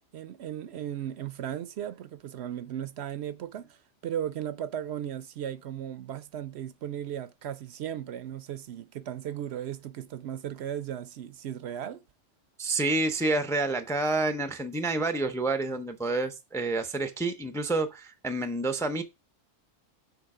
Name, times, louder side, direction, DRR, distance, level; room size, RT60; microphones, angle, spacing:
voice 1, 0.1-12.0, right 10 dB, 70° right, 0.8 m, -36 dB
voice 2, 12.6-19.0, right 2 dB, 5° left, 0.4 m, -28 dB
6.8 x 4.1 x 4.8 m
omnidirectional pair, 1.2 m